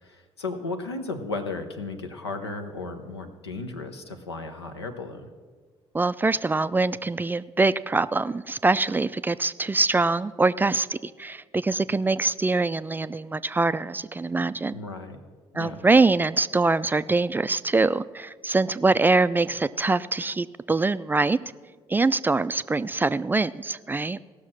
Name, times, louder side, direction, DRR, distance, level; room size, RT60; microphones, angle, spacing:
voice 1, 0.0-5.3 14.7-15.2 15.5-15.9, left 3 dB, 85° left, 6 dB, 0.8 m, -35 dB
voice 2, 5.9-14.8 15.5-21.4 21.9-24.3, right 3 dB, 15° right, 15 dB, 0.3 m, -24 dB
17.0 x 6.3 x 6.1 m, 1.5 s
figure-of-eight pair, 45°, 13 cm